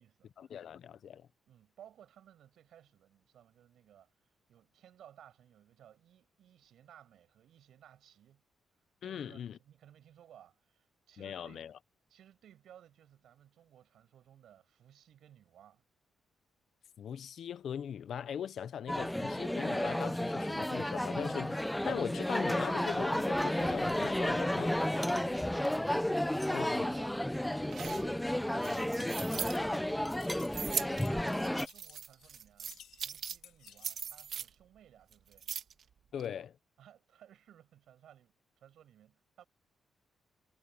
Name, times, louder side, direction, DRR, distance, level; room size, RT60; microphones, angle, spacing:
voice 1, 0.4-1.3 9.0-9.6 11.2-11.7 17.0-24.7 26.5-26.9 36.1-36.6, left 8 dB, 70° left, 0.9 m, -40 dB
voice 2, 1.5-4.1 4.5-8.4 9.0-11.7 12.1-15.8 25.0-25.8 26.1-35.4 36.8-39.4, right 10 dB, 80° right, 6.9 m, -59 dB
sound 1, 18.9-31.7, left 1 dB, 5° left, 0.8 m, -32 dB
sound 2, 27.5-29.6 30.4-31.0 31.4-33.4 33.7-34.5 35.1-35.8 36.2-36.3, right 8 dB, 65° right, 1.8 m, -39 dB
sound 3, 29.2-29.8 30.0-30.6 31.0-32.4 32.7-34.0, left 10 dB, 90° left, 2.3 m, -56 dB
cardioid pair, 105°, 0 cm